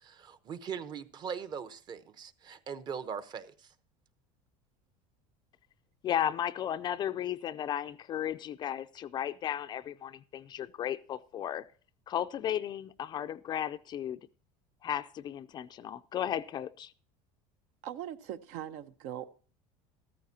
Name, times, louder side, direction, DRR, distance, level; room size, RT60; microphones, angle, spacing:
voice 1, 0.0-3.5, right 7 dB, 30° right, 0.9 m, -40 dB
voice 2, 6.0-11.7 12.1-14.2 14.8-16.9, left 10 dB, 30° left, 0.4 m, -34 dB
voice 3, 17.8-19.3, right 10 dB, 65° right, 0.8 m, -40 dB
14.0 x 14.0 x 2.8 m
cardioid pair, 150°, 14 cm